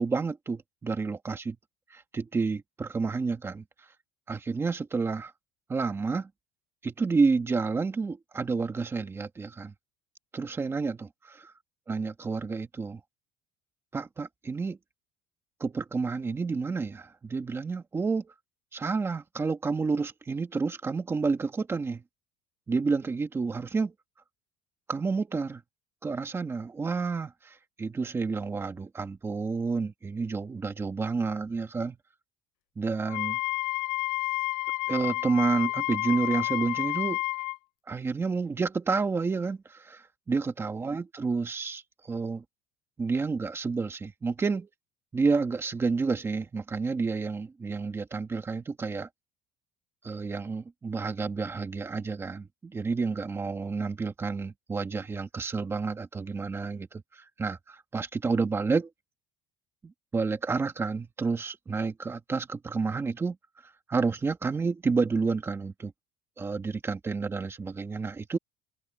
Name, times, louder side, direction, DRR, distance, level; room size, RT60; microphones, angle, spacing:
voice 1, 0.0-1.6 1.9-3.6 4.3-5.3 5.7-6.3 6.8-9.7 10.3-11.5 11.9-13.0 13.9-14.8 15.6-18.3 18.7-22.0 22.7-23.9 24.9-25.6 26.0-32.0 32.8-33.4 34.9-37.2 37.9-41.8 42.1-42.4 43.0-44.7 45.1-49.1 50.0-58.9 59.8-63.4 63.6-65.9 66.4-68.4, right 4 dB, 15° right, 1.8 m, -30 dB
Wind instrument woodwind instrument, 33.1-37.6, left 24 dB, 80° left, 0.5 m, -30 dB
cardioid pair, 170°, 18 cm